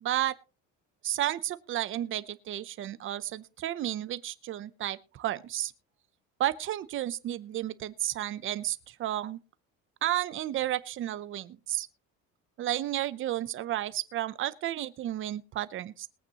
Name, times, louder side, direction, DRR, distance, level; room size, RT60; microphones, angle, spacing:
voice 1, 0.0-0.4 1.0-5.7 6.4-9.4 10.0-11.9 12.6-16.1, right 13 dB, 40° right, 0.7 m, -32 dB
21.5 x 8.7 x 2.9 m
cardioid pair, 170°, 32 cm